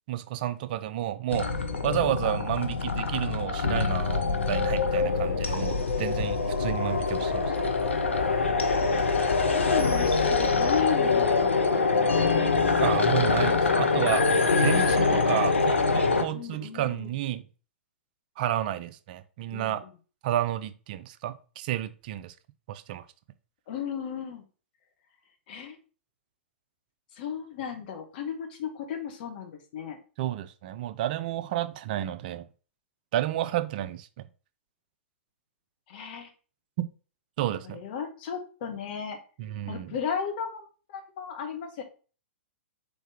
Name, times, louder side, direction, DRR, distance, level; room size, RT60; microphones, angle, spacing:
voice 1, 0.1-1.5 1.8-7.8 12.8-14.3 14.6-17.4 18.4-19.8 20.2-22.3 22.7-23.1 30.2-32.4 33.1-34.2 37.4-37.8 39.4-39.9, right 12 dB, 45° right, 0.5 m, -31 dB
sound 1, 1.3-16.2, left 4 dB, 75° left, 0.7 m, -24 dB
voice 2, 9.5-12.4 16.3-17.1 19.5-19.9 23.7-24.4 25.5-25.8 27.1-30.0 35.9-36.3 37.6-39.2 39.7-41.8, left 7 dB, 45° left, 1.2 m, -35 dB
4.1 x 3.4 x 3.6 m
figure-of-eight pair, 110°, 7 cm